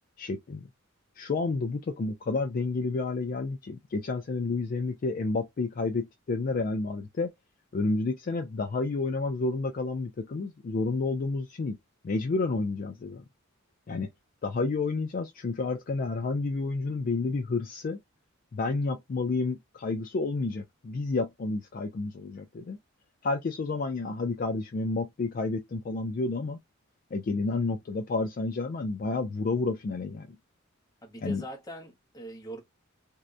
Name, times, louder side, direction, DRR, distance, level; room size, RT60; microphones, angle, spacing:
voice 1, 0.2-0.7 1.2-7.3 7.7-11.8 12.0-13.2 13.9-14.1 14.4-18.0 18.5-22.8 23.2-26.6 27.1-30.3 31.2-31.4, left 3 dB, 40° left, 0.3 m, -30 dB
voice 2, 31.0-32.6, right 1 dB, 15° left, 0.7 m, -41 dB
2.7 x 2.1 x 2.2 m
head